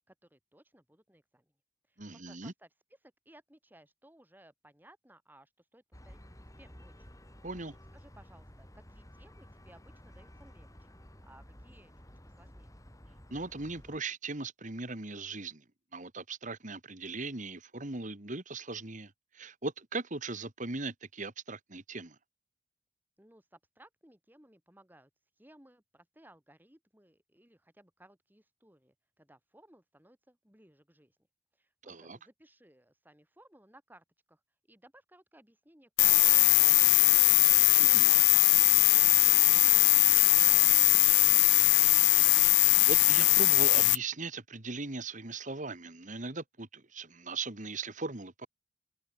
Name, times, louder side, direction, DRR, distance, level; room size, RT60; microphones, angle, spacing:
voice 1, 0.0-1.5 1.9-7.1 7.9-11.9 12.2-12.8 23.2-25.1 25.4-31.2 31.5-34.4 34.7-37.0 37.4-42.0, right 1 dB, 10° right, 6.6 m, -60 dB
voice 2, 2.0-2.5 7.4-7.8 13.3-15.6 15.9-22.2 31.8-32.2 37.8-38.1 42.9-48.5, right 3 dB, 40° right, 2.2 m, -39 dB
sound 1, 5.9-14.0, equal, 20° left, 6.3 m, -53 dB
sound 2, 36.0-44.0, left 22 dB, 65° left, 0.4 m, -21 dB
head